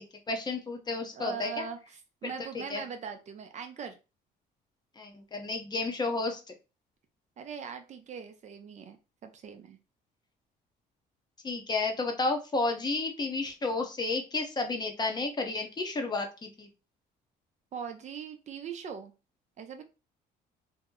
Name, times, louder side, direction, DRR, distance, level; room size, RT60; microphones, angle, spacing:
voice 1, 0.0-1.6 2.7-2.8 5.0-6.4 11.4-16.7, left 3 dB, 25° left, 4 dB, 0.6 m, -32 dB
voice 2, 1.1-4.0 7.4-9.0 9.2-9.8 17.7-19.1 19.6-19.8, right 7 dB, 45° right, 6 dB, 0.5 m, -41 dB
2.7 x 2.0 x 3.6 m, 0.30 s
cardioid pair, 110°, 17 cm